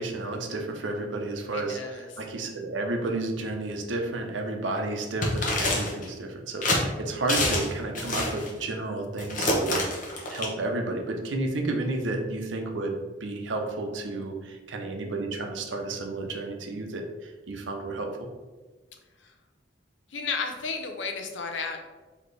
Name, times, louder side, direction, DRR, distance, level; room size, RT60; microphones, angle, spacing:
voice 1, 0.0-18.1, right 2 dB, 85° right, 3 dB, 0.6 m, -32 dB
voice 2, 1.5-2.1 19.2-19.4 20.1-21.8, left 4 dB, 85° left, 4 dB, 0.6 m, -33 dB
sound 1, 5.2-6.1 6.6-6.8 7.3-7.7 8.0-8.5 9.2-10.5, left 2 dB, 45° left, 0.8 m, -26 dB
4.1 x 2.9 x 3.2 m, 1.3 s
head